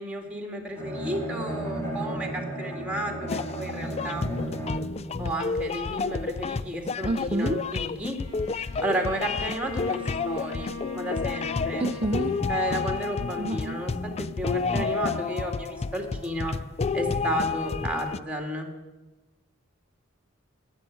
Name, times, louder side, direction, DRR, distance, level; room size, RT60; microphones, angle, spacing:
voice 1, 0.0-4.3 5.2-8.2 8.8-11.9 12.5-16.5 16.9-18.7, right 1 dB, 5° right, 3 dB, 2.2 m, -32 dB
Bowed string instrument, 0.8-5.1, right 1 dB, 15° left, 3.7 m, -33 dB
sound 1, 3.3-18.2, left 4 dB, 30° left, 0.4 m, -30 dB
voice 2, 7.0-7.6 11.8-12.4 13.4-13.8 14.7-14.9, right 2 dB, 30° right, 6 dB, 0.6 m, -29 dB
Bowed string instrument 2, 8.2-13.9, left 5 dB, 75° left, 3.4 m, -40 dB
18.5 x 7.4 x 9.2 m, 1.1 s
head